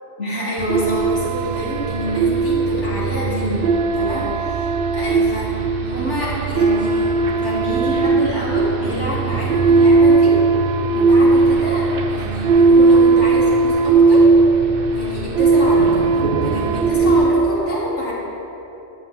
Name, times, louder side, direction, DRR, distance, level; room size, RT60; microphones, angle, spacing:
voice 1, 0.2-10.4 10.9-14.3 14.9-18.1, equal, 80° left, -8 dB, 3.1 m, -27 dB
sound 1, 0.6-17.3, right 3 dB, 60° right, 0.8 m, -17 dB
13.0 x 10.5 x 3.5 m, 3.0 s
omnidirectional pair, 1.2 m